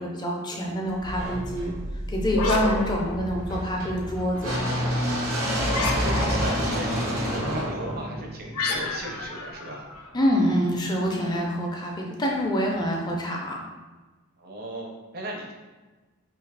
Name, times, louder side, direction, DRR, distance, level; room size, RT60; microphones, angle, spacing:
voice 1, 0.0-1.7 2.1-4.5 10.1-13.6, equal, 20° left, 0 dB, 0.4 m, -26 dB
sound 1, 1.0-9.1, equal, 70° right, 0.8 m, -28 dB
sound 2, 2.3-3.8 5.6-6.7 8.5-10.4, left 3 dB, 80° left, 0.4 m, -30 dB
voice 2, 5.4-9.9 14.4-15.5, right 1 dB, 45° right, 0 dB, 0.5 m, -37 dB
2.7 x 2.4 x 3.2 m, 1.2 s
head